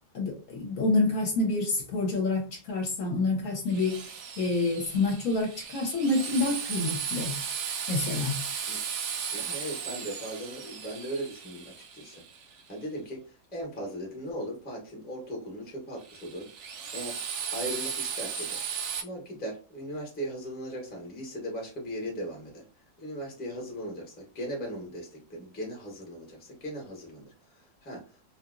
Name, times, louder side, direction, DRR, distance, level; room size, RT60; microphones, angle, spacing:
voice 1, 0.1-7.4 7.9-8.4, left 2 dB, 60° left, 1.0 m, -28 dB
Drill, 3.7-12.6 16.0-19.0, right 7 dB, 65° right, 0.7 m, -36 dB
voice 2, 9.3-18.6 19.0-22.6 23.0-28.2, equal, 10° left, 0.7 m, -38 dB
2.7 x 2.7 x 2.5 m
omnidirectional pair, 1.7 m